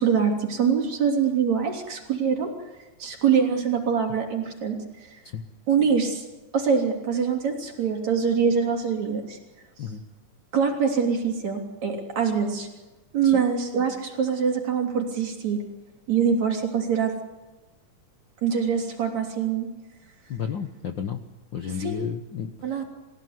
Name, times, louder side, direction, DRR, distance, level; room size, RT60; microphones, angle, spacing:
voice 1, 0.0-2.5 3.0-5.2 5.7-6.2 6.5-9.4 10.5-12.7 13.1-15.6 16.1-17.1 18.4-19.7 21.8-22.0 22.6-22.8, right 6 dB, 55° right, 2 dB, 4.5 m, -24 dB
voice 2, 20.3-21.2 21.5-22.8, left 7 dB, 90° left, 6 dB, 1.0 m, -32 dB
28.0 x 16.5 x 9.6 m, 1.1 s
omnidirectional pair, 3.9 m